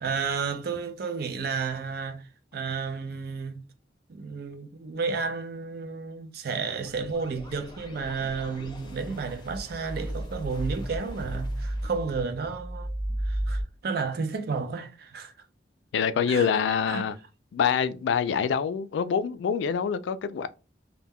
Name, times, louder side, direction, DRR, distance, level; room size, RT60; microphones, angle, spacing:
voice 1, 0.0-2.2 2.5-3.6 4.1-12.9 13.3-15.3 16.3-17.0, right 5 dB, 60° right, 0.4 m, -32 dB
sound 1, 6.7-13.6, right 1 dB, 25° left, 0.6 m, -34 dB
voice 2, 15.9-17.1 17.5-20.5, left 7 dB, 85° left, 0.3 m, -25 dB
2.1 x 2.1 x 3.4 m
head